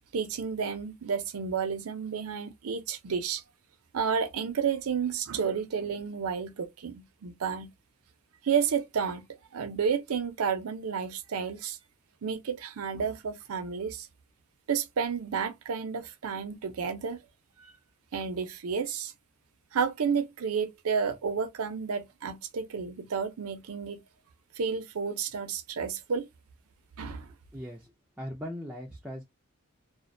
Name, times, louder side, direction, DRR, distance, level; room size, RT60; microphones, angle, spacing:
voice 1, 0.1-3.4 3.9-7.7 8.4-9.3 9.5-11.8 12.2-14.1 14.7-17.2 17.6-17.7 18.1-19.1 19.7-24.0 24.6-26.3 27.0-27.3, right 6 dB, 75° right, 0.5 m, -31 dB
voice 2, 27.5-27.9 28.2-29.2, equal, 5° right, 0.3 m, -39 dB
2.4 x 2.1 x 2.5 m
head